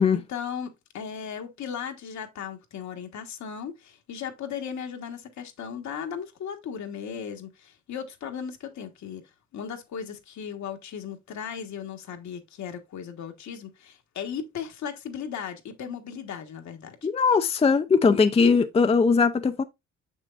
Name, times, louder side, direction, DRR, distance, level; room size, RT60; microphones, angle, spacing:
voice 1, 0.0-9.2 9.5-17.0, left 7 dB, 65° left, 1.4 m, -36 dB
voice 2, 17.0-19.6, left 5 dB, 20° left, 0.5 m, -20 dB
6.7 x 6.2 x 2.4 m
cardioid pair, 90°, 30 cm